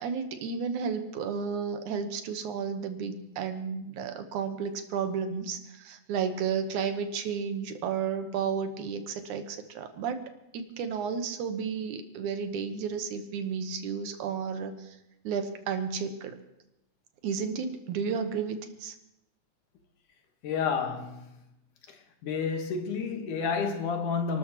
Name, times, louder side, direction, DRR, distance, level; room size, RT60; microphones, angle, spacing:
voice 1, 0.0-10.2 10.5-15.0 15.2-16.4 17.2-19.0, right 6 dB, 75° right, 2.5 m, -32 dB
voice 2, 20.4-21.3 22.2-24.4, left 5 dB, 75° left, 2.9 m, -30 dB
29.5 x 13.0 x 3.0 m
omnidirectional pair, 3.7 m